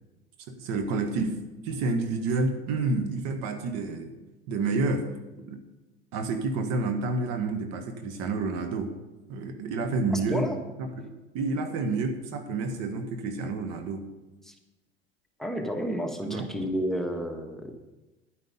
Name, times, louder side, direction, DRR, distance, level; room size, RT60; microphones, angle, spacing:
voice 1, 0.5-1.4 1.6-4.1 4.5-5.1 5.5-5.6 6.1-8.9 9.3-10.5 10.8-14.0 16.2-16.7, right 3 dB, 55° right, 6 dB, 1.5 m, -29 dB
voice 2, 15.4-17.7, equal, ahead, 4 dB, 1.5 m, -31 dB
10.5 x 9.4 x 5.5 m, 1.1 s
hypercardioid pair, 75°, 31 cm